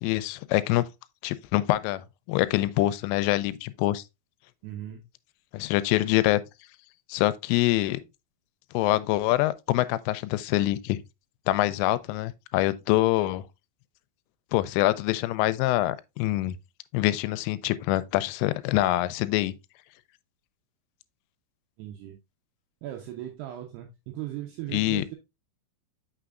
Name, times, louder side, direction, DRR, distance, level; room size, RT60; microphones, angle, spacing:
voice 1, 0.0-0.9 1.2-4.0 5.5-6.4 7.1-8.0 8.7-11.0 11.5-13.4 14.5-16.6 16.9-19.5 24.7-25.0, left 16 dB, 90° left, 3.1 m, -25 dB
voice 2, 4.6-5.0 21.8-22.2 22.8-25.2, right 13 dB, 85° right, 2.3 m, -38 dB
6.8 x 6.2 x 2.4 m
omnidirectional pair, 5.6 m